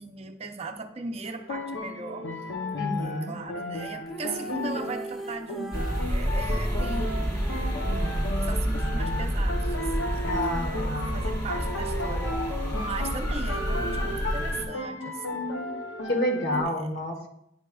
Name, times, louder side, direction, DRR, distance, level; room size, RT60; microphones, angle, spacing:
voice 1, 0.0-2.3 3.0-15.5 16.5-16.9, right 3 dB, 35° right, 6 dB, 0.5 m, -38 dB
sound 1, 1.2-16.6, left 1 dB, 90° left, 0.6 m, -34 dB
voice 2, 2.8-3.3 10.2-11.1 16.0-17.3, left 1 dB, 70° left, 3 dB, 1.2 m, -29 dB
sound 2, 4.1-8.3, right 2 dB, ahead, 0.7 m, -42 dB
sound 3, 5.7-14.6, equal, 20° left, 1.1 m, -29 dB
10.0 x 4.8 x 2.3 m, 0.78 s
head